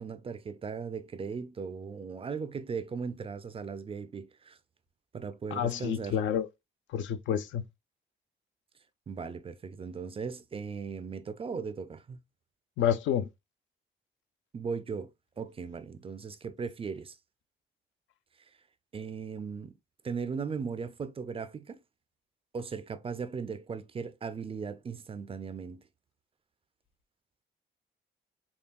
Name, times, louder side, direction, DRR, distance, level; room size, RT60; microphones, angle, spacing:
voice 1, 0.0-4.6 5.1-6.2 9.1-12.2 14.5-15.1 15.4-17.2 18.9-19.7 20.0-21.8 22.5-25.8, right 5 dB, 30° right, 0.4 m, -38 dB
voice 2, 5.5-6.5 6.9-7.6 12.8-13.3, left 9 dB, 75° left, 0.5 m, -29 dB
5.4 x 2.2 x 2.3 m
cardioid pair, 90°, 20 cm